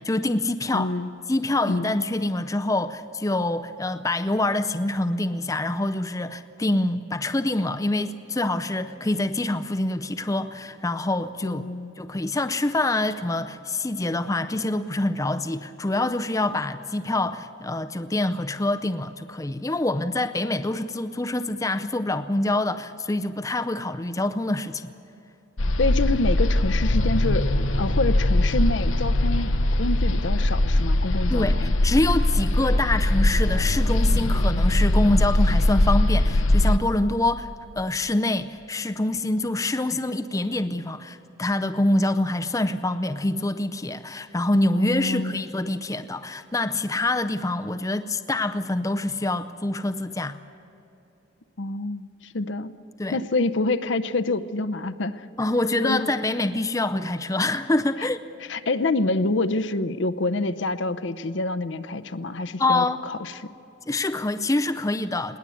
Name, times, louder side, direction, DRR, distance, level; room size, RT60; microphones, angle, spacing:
voice 1, 0.0-0.9 1.3-11.6 12.0-24.9 31.3-37.5 37.8-50.4 53.0-53.2 55.4-58.2 62.6-63.0 63.9-65.4, left 2 dB, 15° left, 9 dB, 0.5 m, -25 dB
voice 2, 0.7-1.1 1.7-1.9 11.4-11.9 25.8-31.7 44.7-45.5 51.6-52.1 52.3-52.7 53.1-55.2 55.8-56.1 58.0-58.1 58.5-63.3, left 2 dB, 65° left, 10 dB, 0.7 m, -27 dB
sound 1, 25.6-36.8, left 1 dB, 90° left, 1.0 m, -21 dB
21.0 x 18.5 x 8.5 m, 2.9 s
head